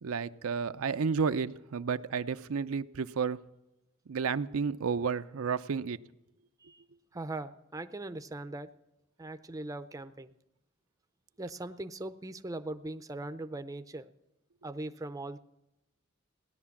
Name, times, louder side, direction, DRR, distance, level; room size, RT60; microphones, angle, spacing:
voice 1, 0.0-3.4 4.1-6.0, right 5 dB, 80° right, 11 dB, 0.5 m, -31 dB
voice 2, 7.1-8.7 9.2-10.3 11.4-14.1 14.6-15.4, right 2 dB, 15° right, 9 dB, 0.5 m, -40 dB
17.0 x 11.0 x 7.2 m, 0.91 s
head